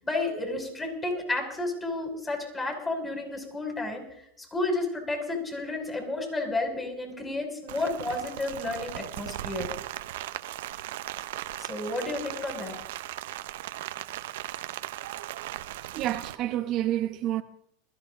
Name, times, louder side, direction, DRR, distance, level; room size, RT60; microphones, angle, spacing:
voice 1, 0.0-4.0 4.5-9.7 11.6-12.8, left 2 dB, 15° left, 6.2 m, -31 dB
Rain, 7.7-16.4, right 14 dB, 80° right, 0.8 m, -38 dB
voice 2, 15.8-17.4, right 13 dB, 45° right, 0.9 m, -29 dB
21.0 x 14.5 x 3.8 m
supercardioid pair, 120°, 0 cm